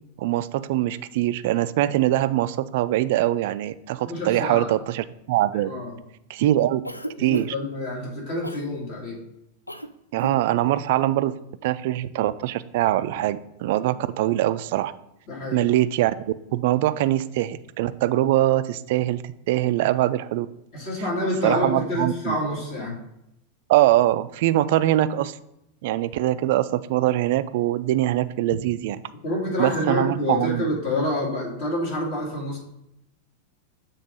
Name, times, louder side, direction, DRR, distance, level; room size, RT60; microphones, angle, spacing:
voice 1, 0.2-5.7 6.3-6.8 7.2-7.5 10.1-11.4 11.6-14.9 15.5-16.2 16.5-20.5 21.4-22.4 23.7-25.4 25.8-29.0 29.6-30.6, right 14 dB, 50° right, 14 dB, 0.3 m, -23 dB
voice 2, 4.0-4.7 5.6-5.9 7.2-9.2 15.3-15.7 20.7-23.0 28.5-28.6 29.2-32.6, left 1 dB, 45° left, -3 dB, 2.6 m, -27 dB
Cough, 6.8-7.7 8.4-8.7 9.7-9.9 10.1-10.4, equal, 85° left, 0.4 m, -34 dB
7.2 x 3.6 x 5.2 m, 0.83 s
figure-of-eight pair, 90°, 0 cm